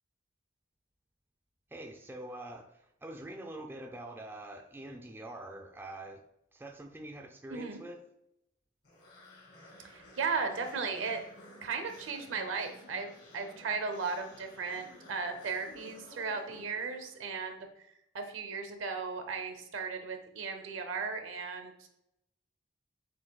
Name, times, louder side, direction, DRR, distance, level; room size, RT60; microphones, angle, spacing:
voice 1, 1.7-6.2 6.5-8.0, right 1 dB, 10° right, 2 dB, 0.3 m, -45 dB
voice 2, 7.5-7.8 9.8-11.2 11.6-17.7 18.1-21.9, right 4 dB, 85° right, 6 dB, 0.6 m, -36 dB
sound 1, 8.8-17.3, left 1 dB, 55° left, 1.4 m, -54 dB
7.4 x 2.6 x 2.3 m, 0.79 s
head